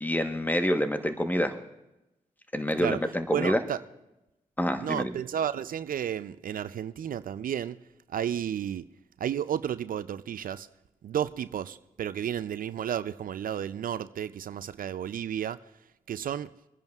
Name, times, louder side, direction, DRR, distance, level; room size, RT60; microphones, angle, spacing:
voice 1, 0.0-1.6 2.5-3.6 4.6-5.1, equal, 10° left, 1.0 m, -27 dB
voice 2, 3.3-3.8 4.8-7.8 8.1-8.8 9.2-10.7 11.0-15.6 16.1-16.5, right 9 dB, 65° right, 0.4 m, -32 dB
26.5 x 10.5 x 2.3 m
supercardioid pair, 45°, 15 cm